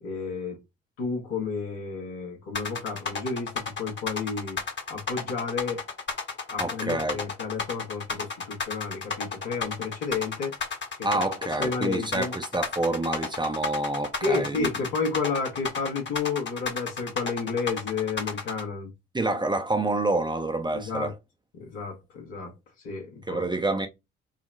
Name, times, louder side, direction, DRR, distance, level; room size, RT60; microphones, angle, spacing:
voice 1, 0.0-0.6 1.0-4.6 4.9-5.8 6.5-10.5 11.0-11.1 11.6-12.3 14.2-18.9 20.7-21.1 21.6-22.5 22.8-23.5, left 4 dB, 75° left, 1.3 m, -31 dB
sound 1, 2.5-18.6, left 5 dB, 35° left, 1.0 m, -32 dB
voice 2, 6.6-7.2 11.0-14.7 19.1-21.1 23.3-23.9, right 2 dB, 15° right, 0.6 m, -27 dB
3.9 x 2.0 x 2.5 m
hypercardioid pair, 45°, 31 cm